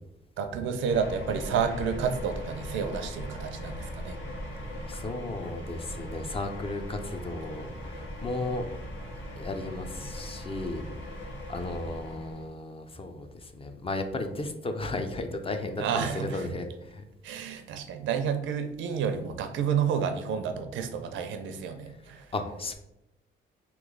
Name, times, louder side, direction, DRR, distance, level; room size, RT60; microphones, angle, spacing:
voice 1, 0.4-4.2 15.8-16.5 17.2-22.3, right 7 dB, 80° right, 8 dB, 0.5 m, -30 dB
sound 1, 0.9-12.5, equal, 75° left, 1.4 m, -39 dB
voice 2, 4.5-8.7 9.4-10.8 11.5-17.0 22.3-22.7, left 2 dB, 30° left, 6 dB, 0.5 m, -35 dB
3.1 x 3.0 x 3.8 m, 0.88 s
cardioid pair, 90°, 20 cm